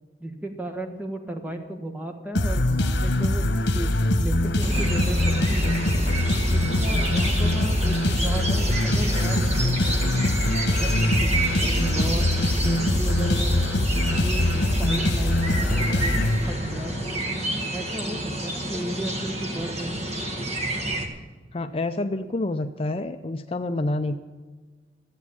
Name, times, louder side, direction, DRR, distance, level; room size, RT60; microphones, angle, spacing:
voice 1, 0.2-6.0 6.5-10.3 10.7-13.6 14.2-14.5 14.8-16.2 16.5-17.2 17.7-20.0, right 1 dB, 10° right, 3 dB, 1.4 m, -34 dB
sound 1, 2.3-16.9, left 1 dB, 85° left, 1.1 m, -23 dB
sound 2, 4.6-21.1, right 1 dB, 40° right, 1.6 m, -29 dB
voice 2, 21.5-24.2, left 2 dB, 35° left, 7 dB, 0.5 m, -28 dB
13.5 x 8.3 x 8.6 m, 1.4 s
head